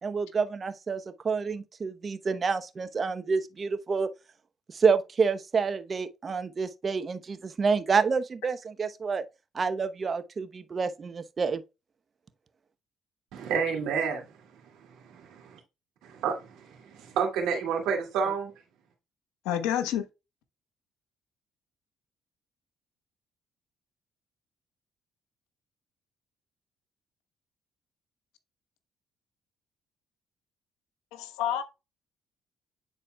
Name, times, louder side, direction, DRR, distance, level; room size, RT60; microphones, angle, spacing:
voice 1, 0.0-4.1 4.7-9.2 9.5-11.6, right 5 dB, 40° right, 0.9 m, -28 dB
voice 2, 13.3-15.2 16.0-18.5, right 6 dB, 75° right, 2.2 m, -30 dB
voice 3, 19.4-20.1 31.1-31.6, left 10 dB, 80° left, 1.1 m, -28 dB
9.9 x 4.2 x 2.3 m
hypercardioid pair, 55°, 0 cm